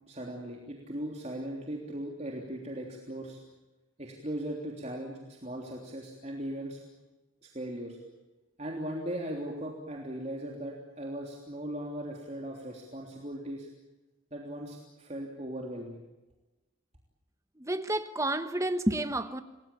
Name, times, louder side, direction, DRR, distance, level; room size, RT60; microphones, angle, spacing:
voice 1, 0.1-3.4 4.0-6.8 7.4-8.0 8.6-13.7 14.3-16.0, right 1 dB, 30° right, 3.4 m, -38 dB
voice 2, 17.6-19.4, right 1 dB, 15° right, 1.2 m, -30 dB
28.5 x 20.0 x 8.6 m
head